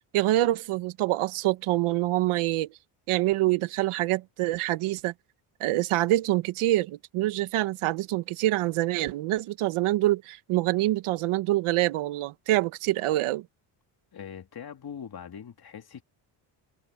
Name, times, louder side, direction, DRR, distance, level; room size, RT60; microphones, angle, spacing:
voice 1, 0.1-2.8 3.1-5.1 5.6-13.5, right 16 dB, 80° right, 1.4 m, -26 dB
voice 2, 14.1-16.0, left 8 dB, 45° left, 3.1 m, -41 dB
cardioid pair, 80°, 49 cm